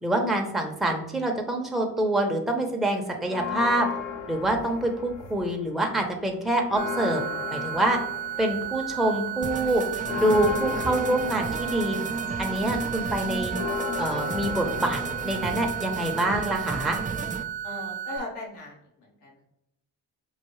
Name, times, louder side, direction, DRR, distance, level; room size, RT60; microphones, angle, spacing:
voice 1, 0.0-3.9 4.3-7.2 7.5-8.0 8.4-9.8 10.1-12.0 12.4-13.5 14.0-17.0, right 1 dB, ahead, 2 dB, 0.7 m, -26 dB
sound 1, 3.3-5.6 6.0-16.5, left 6 dB, 65° left, 1.0 m, -36 dB
sound 2, 6.8-18.2, right 11 dB, 40° right, 1.0 m, -34 dB
sound 3, 9.4-17.4, right 4 dB, 20° right, 0.3 m, -34 dB
voice 2, 17.6-18.8 19.2-19.4, left 2 dB, 85° left, -3 dB, 1.2 m, -37 dB
4.7 x 2.4 x 3.0 m, 0.83 s
hypercardioid pair, 45°, 50 cm